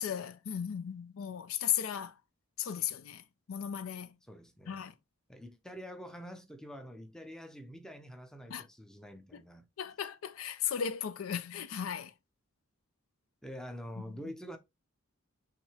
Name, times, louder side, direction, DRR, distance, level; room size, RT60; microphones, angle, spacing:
voice 1, 0.0-2.1 2.6-4.2 4.7-4.9 8.5-8.7 9.3-9.4 9.8-12.1 14.0-14.3, left 9 dB, 70° left, 0.4 m, -36 dB
voice 2, 4.3-4.9 5.3-9.7 13.4-14.6, equal, 5° left, 0.6 m, -46 dB
5.9 x 2.7 x 3.3 m
head